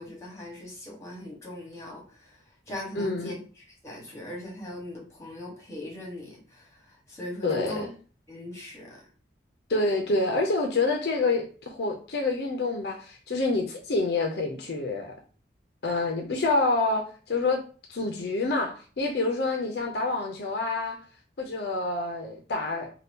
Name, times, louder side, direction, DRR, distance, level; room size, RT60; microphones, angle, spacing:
voice 1, 0.0-2.0 2.7-6.7 7.1-7.8 8.3-9.0, left 1 dB, 15° left, 1.1 m, -39 dB
voice 2, 2.9-3.4 7.4-7.9 9.7-15.1 15.8-17.6 17.9-21.0 21.4-22.9, left 3 dB, 65° left, 0.5 m, -27 dB
2.7 x 2.2 x 3.5 m
head